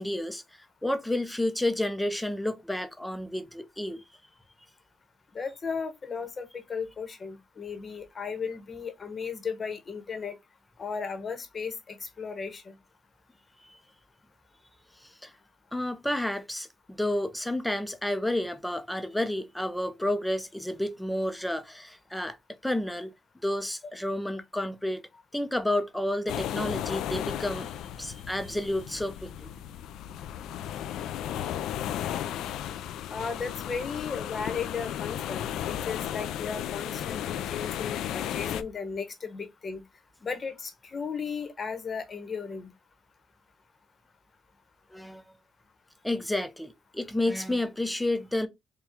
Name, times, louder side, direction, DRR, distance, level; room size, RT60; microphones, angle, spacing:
voice 1, 0.0-4.0 13.6-13.8 15.0-15.3 15.7-22.4 22.6-23.1 23.4-25.0 25.3-27.7 28.0-29.5 44.9-45.2 46.0-48.5, left 1 dB, 5° left, 0.6 m, -30 dB
voice 2, 5.3-10.4 10.8-12.8 33.1-39.8 40.2-42.7, left 5 dB, 40° left, 0.9 m, -35 dB
sound 1, 26.3-38.6, left 10 dB, 85° left, 0.3 m, -34 dB
4.3 x 2.3 x 3.5 m
cardioid pair, 90°, 0 cm